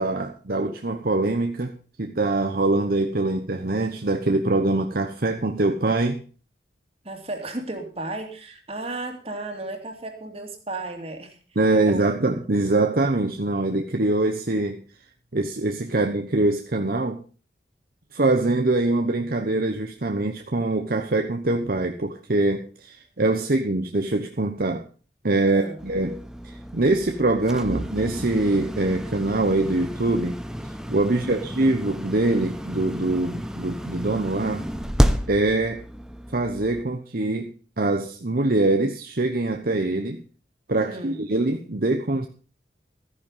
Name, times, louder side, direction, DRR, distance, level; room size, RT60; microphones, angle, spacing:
voice 1, 0.0-1.7 2.0-6.2 11.6-14.8 15.3-17.2 18.1-24.8 25.2-26.1 26.4-30.4 30.9-34.7 35.3-35.8 36.3-40.2 40.7-42.3, right 2 dB, 55° right, 5 dB, 1.0 m, -23 dB
voice 2, 7.0-11.4 11.7-12.0 15.9-16.0 25.5-25.8 31.1-31.6 40.8-41.2, right 2 dB, 35° right, 4 dB, 2.6 m, -34 dB
sound 1, 25.8-36.8, equal, 5° right, 0.9 m, -30 dB
14.0 x 10.0 x 5.5 m, 0.38 s
head